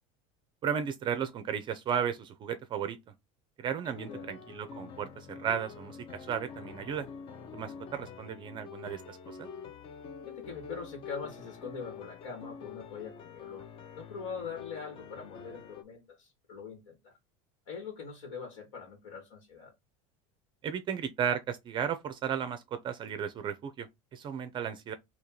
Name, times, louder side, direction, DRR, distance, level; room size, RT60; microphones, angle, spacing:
voice 1, 0.6-3.0 3.6-7.1 7.5-9.5 20.6-24.9, right 8 dB, 30° right, 0.4 m, -34 dB
voice 2, 3.8-4.4 10.2-13.7 14.0-17.1 17.7-19.7, left 5 dB, 85° left, 1.8 m, -43 dB
sound 1, 3.9-15.8, left 6 dB, 35° left, 0.5 m, -46 dB
2.9 x 2.8 x 3.8 m
supercardioid pair, 145°, 17 cm